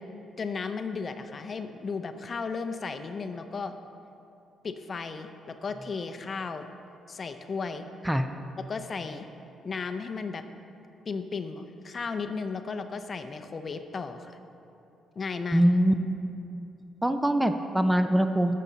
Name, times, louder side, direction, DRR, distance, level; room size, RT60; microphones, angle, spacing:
voice 1, 0.4-3.7 4.6-5.3 5.6-6.7 7.1-7.8 8.7-9.3 9.6-10.4 11.1-14.3 15.2-15.6, left 4 dB, 40° left, 8 dB, 0.6 m, -34 dB
voice 2, 15.5-15.9 17.0-18.6, right 1 dB, 5° right, 8 dB, 0.5 m, -23 dB
12.5 x 7.4 x 4.0 m, 2.8 s
cardioid pair, 90°, 0 cm